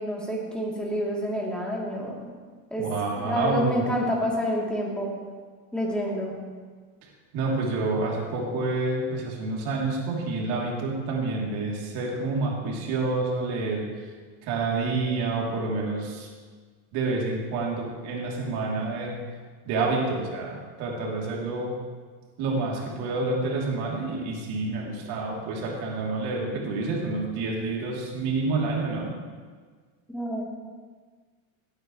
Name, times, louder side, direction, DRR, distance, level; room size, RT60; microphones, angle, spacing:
voice 1, 0.0-2.2 2.7-2.9 3.1-5.1 5.7-6.4 30.1-30.4, equal, ahead, -4 dB, 3.2 m, -28 dB
voice 2, 2.8-3.8 7.3-13.9 14.4-16.3 16.9-19.2 19.6-21.8 22.4-29.1, right 3 dB, 60° right, -2 dB, 3.4 m, -28 dB
18.0 x 9.5 x 3.3 m, 1.5 s
supercardioid pair, 115°, 42 cm